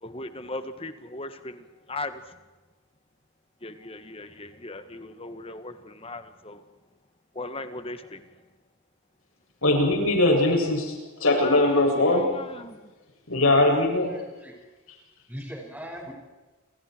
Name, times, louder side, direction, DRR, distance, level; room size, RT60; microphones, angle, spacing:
voice 1, 0.0-2.4 3.6-6.6 7.4-8.2 11.3-12.9, left 2 dB, 25° left, 9 dB, 1.8 m, -38 dB
voice 2, 9.6-10.9 11.2-12.3 13.3-14.1, left 2 dB, 75° left, 1 dB, 7.6 m, -21 dB
voice 3, 14.0-14.6 15.3-16.1, equal, 10° right, 1 dB, 6.2 m, -40 dB
28.5 x 27.5 x 4.8 m, 1.2 s
head